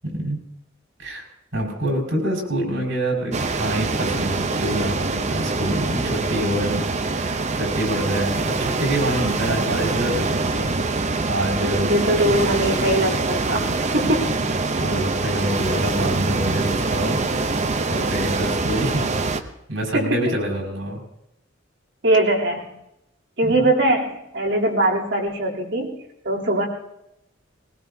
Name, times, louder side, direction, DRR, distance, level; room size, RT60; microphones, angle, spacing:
voice 1, 0.0-0.4 1.0-1.3 1.5-6.8 7.2-10.7 11.3-12.5 14.0-14.1 14.8-17.3 17.9-19.1 19.4-21.0 23.5-23.7, right 1 dB, 85° right, -3 dB, 5.5 m, -26 dB
sound 1, 3.3-19.4, right 3 dB, 35° right, 0.8 m, -24 dB
voice 2, 11.7-14.2 19.9-20.3 22.0-22.7 23.4-26.7, right 1 dB, 65° right, -3 dB, 3.3 m, -21 dB
20.5 x 19.5 x 2.8 m, 0.84 s
head